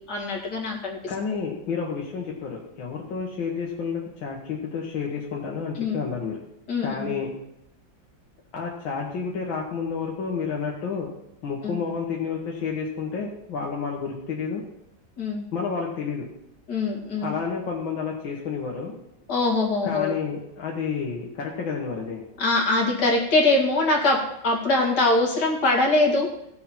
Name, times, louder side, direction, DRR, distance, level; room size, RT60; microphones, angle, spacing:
voice 1, 0.1-1.0 5.8-6.0 6.7-7.1 11.6-11.8 15.2-15.5 16.7-17.3 19.3-20.2 22.4-24.2 24.4-26.3, left 2 dB, 55° left, -1 dB, 2.7 m, -22 dB
voice 2, 1.1-6.4 6.8-7.3 8.5-11.1 11.4-14.6 15.5-16.3 17.2-18.9 19.8-22.2, left 5 dB, 75° left, -2 dB, 2.2 m, -30 dB
16.5 x 6.6 x 4.4 m, 0.82 s
omnidirectional pair, 2.1 m